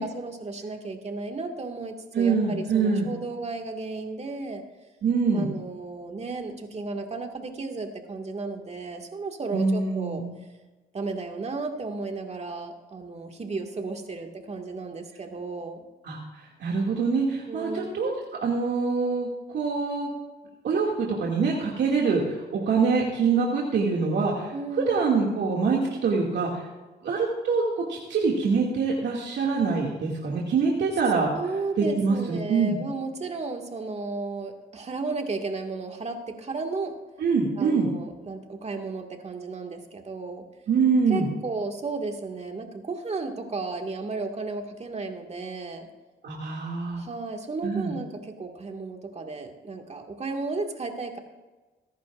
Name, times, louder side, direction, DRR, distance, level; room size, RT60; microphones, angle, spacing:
voice 1, 0.0-4.6 5.3-10.2 10.9-15.8 17.5-17.9 24.5-24.9 31.3-36.9 37.6-40.4 41.1-45.9 47.0-51.2, right 3 dB, 35° right, 3 dB, 2.0 m, -34 dB
voice 2, 2.1-3.1 5.0-5.5 9.5-10.2 16.0-18.1 18.4-20.1 20.6-24.5 24.9-26.6 27.0-31.3 31.8-32.8 37.2-37.9 40.7-41.3 46.2-47.0 47.6-47.9, right 4 dB, 60° right, -3 dB, 2.3 m, -25 dB
23.5 x 11.0 x 2.5 m, 1.2 s
cardioid pair, 90°, 20 cm